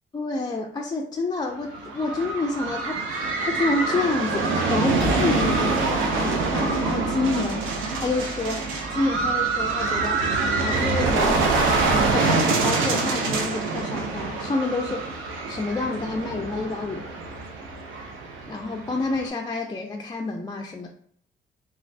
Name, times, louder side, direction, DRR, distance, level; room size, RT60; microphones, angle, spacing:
voice 1, 0.1-7.7 8.0-10.2 10.6-15.1 15.5-17.1 18.5-20.9, left 3 dB, 20° left, 1 dB, 0.3 m, -28 dB
sound 1, 1.6-19.3, right 3 dB, 90° right, 0.5 m, -25 dB
sound 2, 5.0-12.6, right 1 dB, ahead, 1.2 m, -36 dB
3.0 x 2.4 x 2.6 m, 0.63 s
cardioid pair, 90°, 20 cm